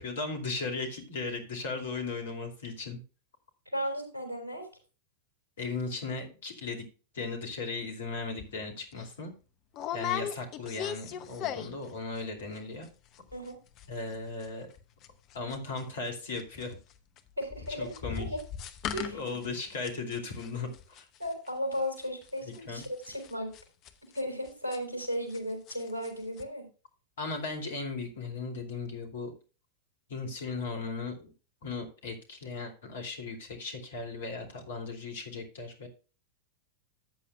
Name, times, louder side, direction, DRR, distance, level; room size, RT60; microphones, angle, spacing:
voice 1, 0.0-3.0 5.6-6.8 7.1-9.3 9.9-12.9 13.9-14.7 15.3-16.8 17.8-18.3 19.1-21.1 22.4-22.8 27.2-29.3 30.1-31.3 31.6-35.9, left 3 dB, 60° left, 3 dB, 2.6 m, -37 dB
voice 2, 3.7-4.7 13.3-13.6 17.4-17.9 18.3-18.4 18.9-19.2 21.2-23.5 24.1-26.7, equal, 80° right, 2 dB, 3.6 m, -35 dB
sound 1, 8.4-8.5 8.9-9.1 9.7-11.9 12.2-12.6 12.8-12.9 13.1-13.5 13.8-16.1 16.3-25.4 25.7-26.1 26.4-26.5, left 9 dB, 40° left, 0.9 m, -39 dB
13.5 x 8.5 x 2.3 m, 0.33 s
figure-of-eight pair, 90°, 0 cm